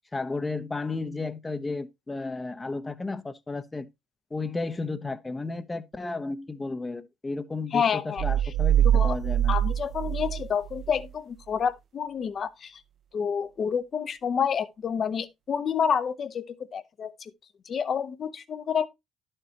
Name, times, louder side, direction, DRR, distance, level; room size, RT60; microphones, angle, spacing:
voice 1, 0.1-3.9 4.3-9.5, left 3 dB, 20° left, 0.9 m, -33 dB
voice 2, 7.7-8.2 8.9-9.2 9.5-12.8 13.1-17.3 17.7-18.9, left 7 dB, 50° left, 0.9 m, -29 dB
sound 1, 8.2-11.0, right 10 dB, 50° right, 0.7 m, -24 dB
11.0 x 6.7 x 2.9 m
hypercardioid pair, 60°, 0 cm